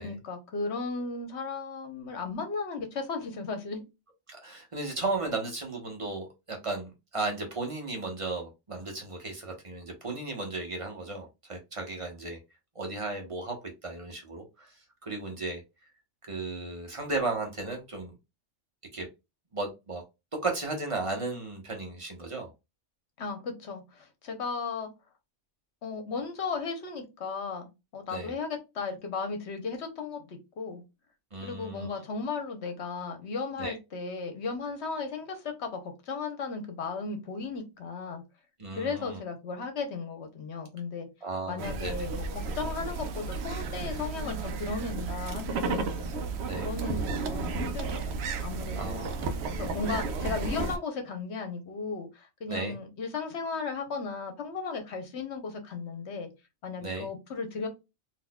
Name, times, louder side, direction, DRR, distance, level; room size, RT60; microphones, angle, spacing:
voice 1, 0.0-3.8 23.2-24.9 25.8-30.8 31.4-38.2 38.7-41.1 41.5-46.2 46.6-49.1 49.6-56.3 56.6-57.7, left 4 dB, 70° left, 1.2 m, -35 dB
voice 2, 4.3-12.4 12.7-13.6 13.8-14.7 15.0-15.6 16.3-18.1 18.9-19.1 19.5-20.0 20.4-22.5 28.1-28.3 31.3-31.9 33.6-33.7 38.6-39.2 41.2-41.9 46.4-46.7 48.7-49.3 52.5-52.8 56.8-57.1, right 3 dB, 30° right, 0.9 m, -35 dB
sound 1, 41.6-50.8, right 4 dB, 70° right, 0.8 m, -33 dB
3.9 x 2.7 x 2.2 m
omnidirectional pair, 1.2 m